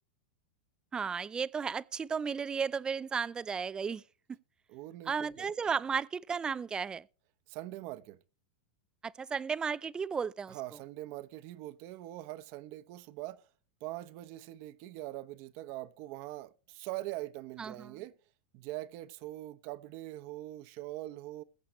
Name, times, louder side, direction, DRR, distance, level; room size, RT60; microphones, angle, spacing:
voice 1, 0.9-4.0 5.1-7.0 9.0-10.6 17.6-17.9, right 6 dB, 15° right, 0.4 m, -34 dB
voice 2, 4.7-5.5 7.5-8.2 10.5-13.5 13.8-18.1 18.5-21.4, right 16 dB, 45° right, 0.9 m, -43 dB
21.0 x 8.1 x 3.1 m
supercardioid pair, 135°, 5 cm